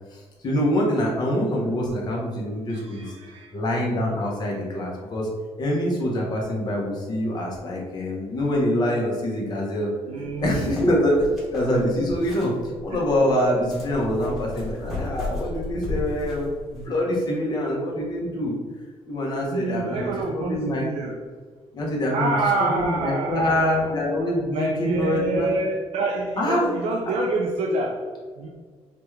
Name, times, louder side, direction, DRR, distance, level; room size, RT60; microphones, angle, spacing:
voice 1, 0.1-3.0 3.5-5.3 5.6-9.9 10.4-12.5 12.8-18.5 19.1-20.0 20.3-20.9 21.7-22.3 22.6-25.5 26.4-26.7, left 1 dB, 40° left, -2 dB, 0.9 m, -25 dB
voice 2, 2.7-3.5 10.1-10.8 19.5-21.1 22.1-23.9 24.5-28.0 28.4-28.5, right 2 dB, 70° right, 0 dB, 0.5 m, -27 dB
sound 1, 10.3-16.9, left 2 dB, ahead, 1.2 m, -34 dB
4.8 x 2.4 x 3.2 m, 1.5 s
cardioid pair, 170°, 11 cm